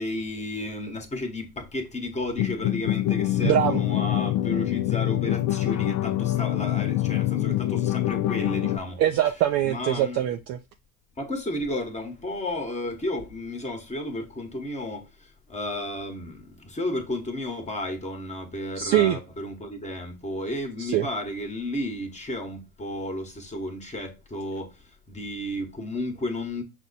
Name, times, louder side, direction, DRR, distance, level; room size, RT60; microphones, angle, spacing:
voice 1, 0.0-9.0 9.6-10.2 11.2-26.6, left 1 dB, 15° left, 1.1 m, -33 dB
sound 1, 2.2-8.8, left 14 dB, 45° left, 0.4 m, -25 dB
voice 2, 3.4-3.8 9.0-10.6 18.8-19.2 20.8-21.1, right 12 dB, 35° right, 0.4 m, -23 dB
6.0 x 2.1 x 4.0 m
hypercardioid pair, 90°, 48 cm